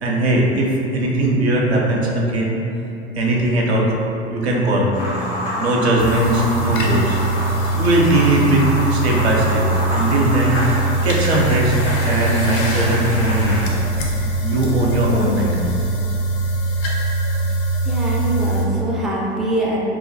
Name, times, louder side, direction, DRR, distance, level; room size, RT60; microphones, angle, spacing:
voice 1, 0.0-2.5 3.2-3.9 4.3-5.1 5.6-7.2 7.7-10.6 11.0-13.6 14.4-15.5, right 1 dB, 80° right, -2 dB, 0.5 m, -19 dB
sound 1, 4.9-13.7, equal, 80° left, 1.0 m, -27 dB
sound 2, 6.0-18.6, right 2 dB, 45° left, 0.6 m, -22 dB
voice 2, 17.8-19.8, right 1 dB, ahead, -5 dB, 0.3 m, -23 dB
3.0 x 2.1 x 2.6 m, 2.8 s
figure-of-eight pair, 70°, 32 cm